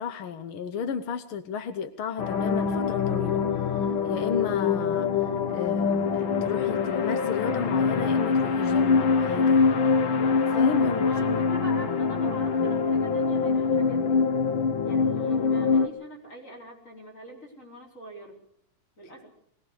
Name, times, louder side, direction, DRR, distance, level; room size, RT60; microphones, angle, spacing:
voice 1, 0.0-3.4 4.0-9.9 10.2-11.1, left 6 dB, 70° left, 10 dB, 1.2 m, -33 dB
sound 1, 2.2-15.9, left 5 dB, 55° left, 1.5 m, -24 dB
voice 2, 11.0-14.2 14.8-18.4 19.0-19.3, equal, 25° left, 0 dB, 4.6 m, -43 dB
21.5 x 19.0 x 6.4 m, 0.68 s
omnidirectional pair, 3.6 m